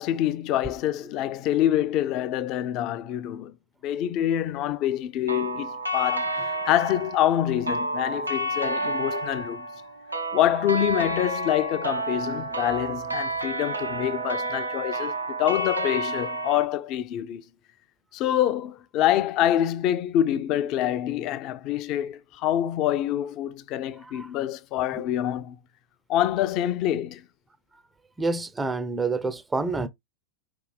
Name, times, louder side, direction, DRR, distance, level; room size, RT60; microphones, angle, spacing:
voice 1, 0.0-3.5 3.8-9.7 10.3-17.4 18.1-25.6 26.1-27.2, left 12 dB, 40° left, 0.6 m, -26 dB
sound 1, 5.3-16.7, right 1 dB, 85° right, 0.8 m, -30 dB
voice 2, 28.2-29.9, right 3 dB, 10° right, 0.6 m, -28 dB
4.7 x 3.4 x 3.3 m
figure-of-eight pair, 90°, 0 cm